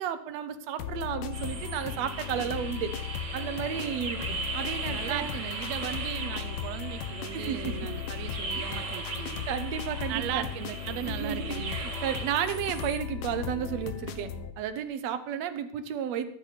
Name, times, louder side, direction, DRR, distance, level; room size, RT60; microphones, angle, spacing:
voice 1, 0.0-2.9 3.3-5.3 7.3-7.9 8.5-8.9 9.5-10.4 11.1-14.3 14.6-16.3, right 9 dB, 65° right, 9 dB, 1.8 m, -33 dB
sound 1, 0.8-14.5, left 8 dB, 80° left, 2.5 m, -37 dB
sound 2, 1.3-13.0, right 4 dB, 30° right, 1.8 m, -39 dB
voice 2, 4.9-9.5 10.1-11.8, right 13 dB, 85° right, 12 dB, 1.5 m, -37 dB
21.5 x 10.5 x 4.2 m, 0.65 s
omnidirectional pair, 3.7 m